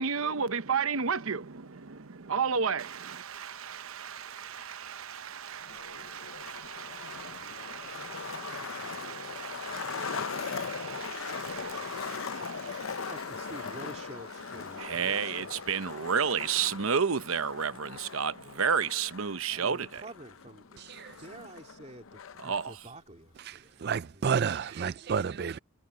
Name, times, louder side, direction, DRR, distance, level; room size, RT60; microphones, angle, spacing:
voice 1, 0.0-13.1 14.8-20.0 22.4-22.8, right 6 dB, 75° right, 0.9 m, -33 dB
Skateboard, 5.6-22.6, left 5 dB, 70° left, 0.7 m, -40 dB
voice 2, 13.1-15.7 19.5-20.8 21.2-23.9 24.1-25.0, right 2 dB, 30° right, 2.5 m, -48 dB
voice 3, 20.8-21.2 23.5-25.6, right 6 dB, 50° right, 0.4 m, -31 dB
head